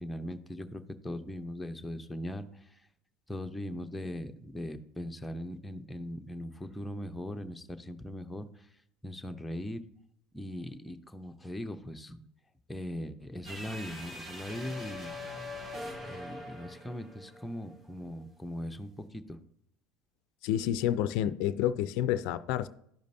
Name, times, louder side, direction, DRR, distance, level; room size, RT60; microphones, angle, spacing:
voice 1, 0.0-2.5 3.3-8.4 9.0-9.8 10.3-12.2 12.7-15.1 16.1-19.2, equal, 10° left, 0.7 m, -39 dB
sound 1, 13.4-17.8, left 1 dB, 30° right, 2.2 m, -42 dB
voice 2, 20.4-22.7, left 11 dB, 65° left, 0.4 m, -29 dB
12.0 x 5.1 x 2.7 m
hypercardioid pair, 80°, 0 cm